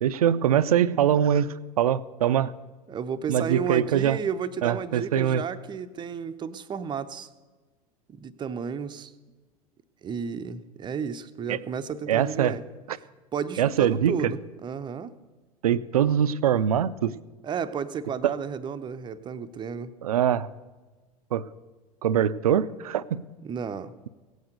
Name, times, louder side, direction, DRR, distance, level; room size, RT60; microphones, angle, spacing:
voice 1, 0.0-2.5 3.3-4.2 4.6-5.4 11.5-11.6 12.1-12.5 12.9-13.0 13.6-14.2 15.6-17.2 18.2-18.3 20.0-20.5 21.3-21.4 22.0-23.2, right 9 dB, 70° right, 16 dB, 0.5 m, -23 dB
voice 2, 2.9-7.3 8.1-9.1 10.0-12.6 13.3-15.1 17.4-19.9 23.4-23.9, right 6 dB, 25° right, 12 dB, 0.6 m, -32 dB
17.0 x 8.1 x 6.6 m, 1.3 s
figure-of-eight pair, 80°, 20 cm